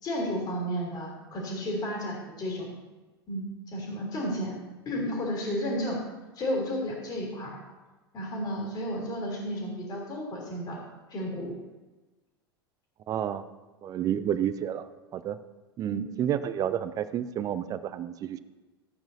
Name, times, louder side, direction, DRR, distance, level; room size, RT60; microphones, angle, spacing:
voice 1, 0.0-2.8 3.3-4.6 4.8-6.0 6.3-7.6 8.1-10.8 11.1-11.5 15.9-16.1, equal, 30° left, -1 dB, 3.3 m, -32 dB
voice 2, 13.1-13.4 13.8-15.4 15.8-18.4, right 10 dB, 25° right, 13 dB, 0.5 m, -30 dB
14.5 x 8.7 x 2.8 m, 1.2 s
figure-of-eight pair, 85°, 13 cm